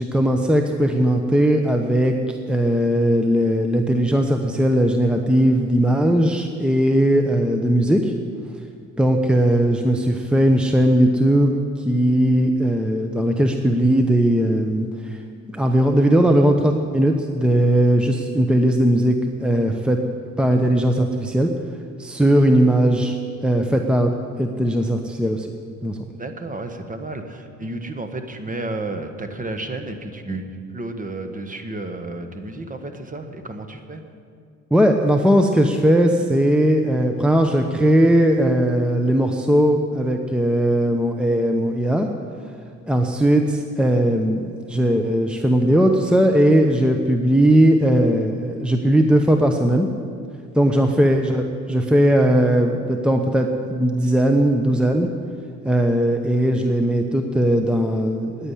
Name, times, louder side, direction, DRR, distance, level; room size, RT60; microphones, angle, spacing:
voice 1, 0.0-8.1 9.0-15.2 15.5-19.2 19.4-20.0 20.4-21.5 22.0-23.2 23.4-24.1 24.4-25.5 25.8-26.0 34.7-42.1 42.9-49.9 50.5-55.1 55.6-58.5, right 1 dB, 5° right, 4 dB, 0.8 m, -18 dB
voice 2, 26.1-30.4 30.7-34.0 51.0-51.1, right 2 dB, 25° right, 6 dB, 1.3 m, -32 dB
9.8 x 8.9 x 9.9 m, 2.2 s
cardioid pair, 90°, 30 cm